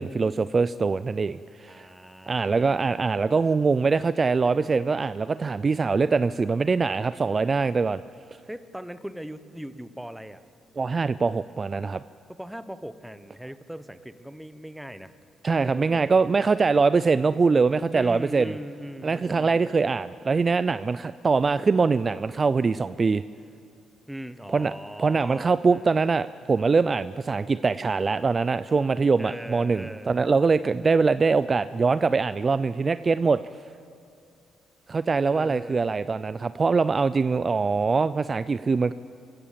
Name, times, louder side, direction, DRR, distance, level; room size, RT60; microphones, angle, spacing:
voice 1, 0.0-1.9 2.3-8.0 10.8-12.0 15.4-18.5 19.0-23.2 24.5-24.7 25.0-33.4 34.9-38.9, right 4 dB, 35° right, 15 dB, 0.4 m, -23 dB
voice 2, 1.6-2.9 8.5-10.4 12.4-15.2 15.6-16.2 17.9-19.7 24.1-25.9 29.2-30.1 35.3-35.9, equal, 5° right, 12 dB, 1.0 m, -40 dB
26.0 x 15.5 x 7.6 m, 2.4 s
cardioid pair, 90°, 0 cm